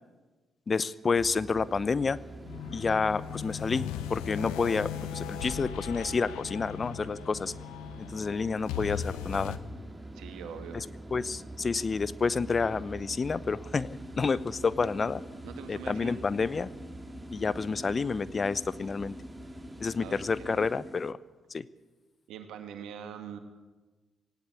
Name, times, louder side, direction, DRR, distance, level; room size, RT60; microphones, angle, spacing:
voice 1, 0.7-2.2 2.7-7.5 8.0-9.6 10.7-10.8 11.1-15.2 15.7-16.7 17.3-19.2 19.8-21.2 21.5-21.6, left 4 dB, 40° left, 18 dB, 0.8 m, -29 dB
sound 1, 1.2-20.8, right 2 dB, 15° right, 3.8 m, -45 dB
sound 2, 2.4-9.6, left 9 dB, 75° left, 1.0 m, -38 dB
voice 2, 10.1-10.8 15.4-16.2 20.0-20.6 22.3-23.4, right 8 dB, 70° right, 7 dB, 2.1 m, -43 dB
sound 3, 13.7-21.1, left 2 dB, 5° left, 1.5 m, -48 dB
18.0 x 17.0 x 8.6 m, 1.3 s
hypercardioid pair, 40°, 0 cm